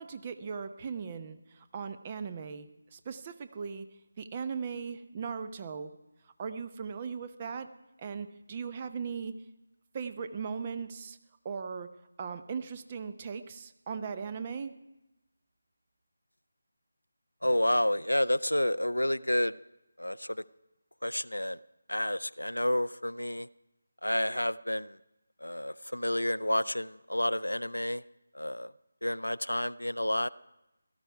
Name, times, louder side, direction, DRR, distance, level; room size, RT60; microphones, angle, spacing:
voice 1, 0.0-3.9 4.2-5.9 6.4-7.7 8.0-9.3 9.9-11.2 11.4-11.9 12.2-14.7, right 6 dB, 25° right, 10 dB, 0.8 m, -38 dB
voice 2, 17.4-19.5 20.0-20.4 21.0-21.6 21.9-23.5 24.0-25.0 25.4-28.0 28.3-28.7 29.0-30.3, left 1 dB, 85° left, 17 dB, 0.4 m, -30 dB
17.5 x 13.0 x 4.7 m, 0.95 s
figure-of-eight pair, 160°, 0 cm